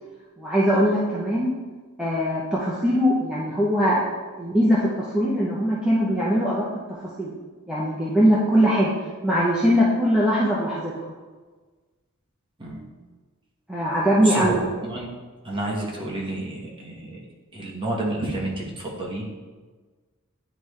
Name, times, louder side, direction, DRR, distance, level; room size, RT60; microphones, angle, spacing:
voice 1, 0.4-1.6 2.0-6.8 7.2-7.3 7.7-8.9 9.2-10.9 13.7-14.6, equal, 5° right, -8 dB, 0.7 m, -21 dB
voice 2, 14.2-15.1 15.4-17.2 17.5-19.3, right 1 dB, 25° right, -3 dB, 1.2 m, -30 dB
10.0 x 3.4 x 3.2 m, 1.4 s
head